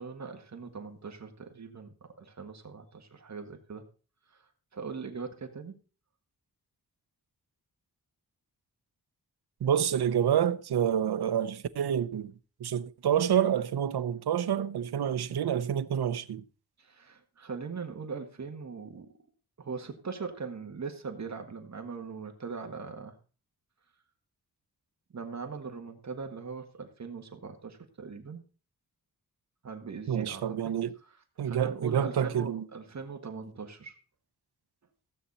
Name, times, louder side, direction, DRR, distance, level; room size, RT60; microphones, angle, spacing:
voice 1, 0.0-3.8 4.3-4.4 4.7-5.8 16.8-19.1 19.6-23.1 25.1-28.4 29.6-30.7 31.4-34.0, right 5 dB, 45° right, 1.6 m, -40 dB
voice 2, 9.6-12.3 12.6-16.4 30.1-30.9 31.4-32.6, right 9 dB, 85° right, 0.8 m, -28 dB
16.0 x 8.2 x 4.2 m
wide cardioid pair, 175°, 38 cm